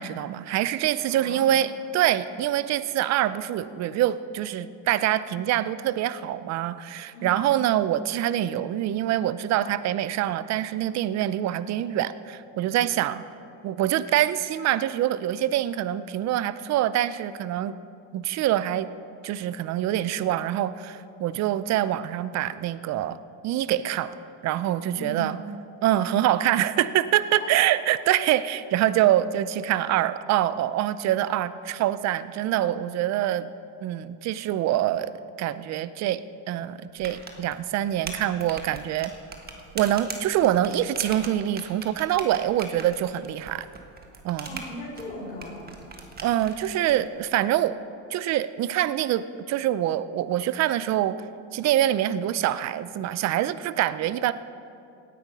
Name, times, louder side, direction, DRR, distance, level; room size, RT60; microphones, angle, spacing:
voice 1, 0.0-13.2 13.6-17.8 18.1-18.9 19.2-23.2 23.4-24.1 24.4-25.4 25.8-33.5 33.8-35.1 35.4-39.1 39.7-43.7 44.2-44.6 46.2-47.8 48.1-51.3 51.5-54.3, right 12 dB, 50° right, 15 dB, 0.6 m, -25 dB
voice 2, 1.1-1.5 7.1-7.5 24.9-25.3 27.3-27.7 44.4-45.8, equal, 25° left, -3 dB, 3.0 m, -38 dB
sound 1, 37.0-46.9, right 4 dB, 25° right, 1.4 m, -40 dB
17.5 x 8.7 x 5.5 m, 2.5 s
cardioid pair, 120°, 36 cm